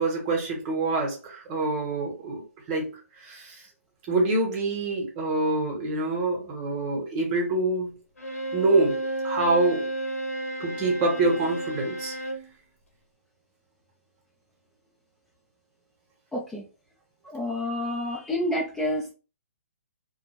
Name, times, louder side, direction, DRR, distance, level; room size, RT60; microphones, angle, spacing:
voice 1, 0.0-3.6 4.1-7.9 8.5-9.0 9.2-9.9 10.6-12.1, right 2 dB, 35° right, 0 dB, 1.1 m, -26 dB
Bowed string instrument, 8.2-12.5, right 1 dB, 85° left, 0.9 m, -32 dB
voice 2, 16.3-16.7 17.2-19.1, left 1 dB, 5° left, -6 dB, 0.6 m, -29 dB
2.2 x 2.1 x 3.0 m, 0.32 s
hypercardioid pair, 135°, 8 cm